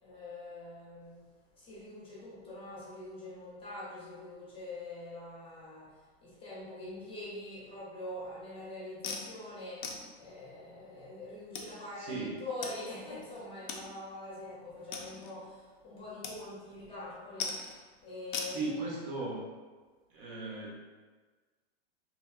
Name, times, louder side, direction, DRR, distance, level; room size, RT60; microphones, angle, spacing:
voice 1, 0.0-1.3 1.5-6.0 6.2-9.9 10.2-17.6 18.0-18.8, left 2 dB, 15° left, -7 dB, 0.7 m, -44 dB
sound 1, 9.0-9.3 9.8-10.0 10.9-11.0 11.5-11.7 12.6-12.7 13.0-13.1 13.7-13.8 14.2-14.3 14.9-15.4 16.2-16.4 16.6-17.0 17.4-17.8 18.3-18.5, left 5 dB, 50° left, 0.5 m, -38 dB
voice 2, 12.0-12.3 18.5-19.4 20.1-20.7, right 3 dB, 40° right, -3 dB, 0.7 m, -37 dB
3.0 x 2.7 x 2.4 m, 1.4 s
hypercardioid pair, 135°, 32 cm